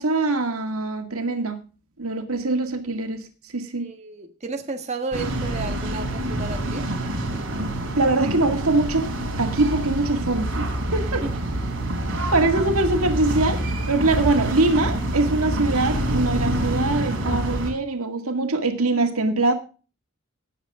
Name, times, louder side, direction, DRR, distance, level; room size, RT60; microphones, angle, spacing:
voice 1, 0.0-1.6 2.0-3.2 3.5-3.9 8.0-9.1 9.4-10.7 10.9-11.2 12.3-13.6 13.9-19.5, right 2 dB, 85° right, 6 dB, 2.0 m, -23 dB
voice 2, 3.8-6.9 11.2-11.6, right 3 dB, 30° right, 4 dB, 1.3 m, -33 dB
sound 1, 5.1-17.7, right 1 dB, 60° right, 3.6 m, -26 dB
18.0 x 7.6 x 3.6 m, 0.35 s
head